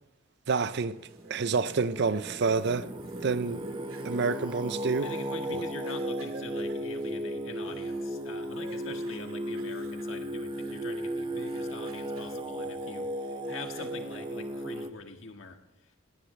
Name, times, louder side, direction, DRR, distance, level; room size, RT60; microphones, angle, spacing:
voice 1, 0.5-1.0 1.3-2.9 3.2-3.6 4.0-5.1 5.5-5.6, right 4 dB, 55° right, 0.6 m, -28 dB
sound 1, 0.7-11.1 11.4-12.4 12.8-14.2, right 2 dB, 85° right, 2.4 m, -52 dB
Singing, 1.0-14.9, right 1 dB, 25° right, 0.8 m, -35 dB
voice 2, 5.0-16.0, left 3 dB, 65° left, 1.7 m, -44 dB
18.5 x 18.5 x 3.3 m
head